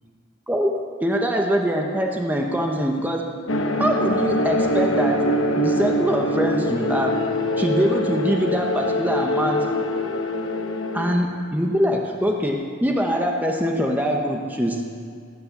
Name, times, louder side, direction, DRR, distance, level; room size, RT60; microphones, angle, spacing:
voice 1, 0.5-3.4 3.8-7.3 7.6-9.8 10.9-14.8, equal, 10° right, 1 dB, 1.0 m, -23 dB
sound 1, 3.5-11.2, left 1 dB, 70° left, 1.1 m, -23 dB
19.0 x 8.8 x 8.3 m, 2.2 s
head